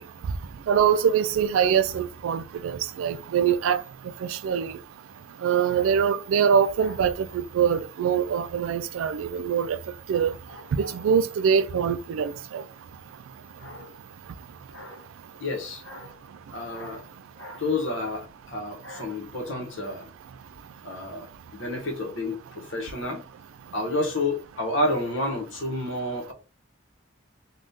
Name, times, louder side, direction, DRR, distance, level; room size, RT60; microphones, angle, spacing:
voice 1, 0.7-3.8 4.3-4.7 5.4-7.3 7.5-9.8 10.1-10.3 10.7-12.6, right 7 dB, 80° right, 0.3 m, -23 dB
voice 2, 10.1-11.0 13.6-13.9 14.7-15.1 15.4-16.2 16.5-17.0 17.4-20.1 20.8-21.3 21.5-23.2 23.7-26.3, left 2 dB, 65° left, 0.9 m, -30 dB
3.4 x 2.3 x 2.7 m
head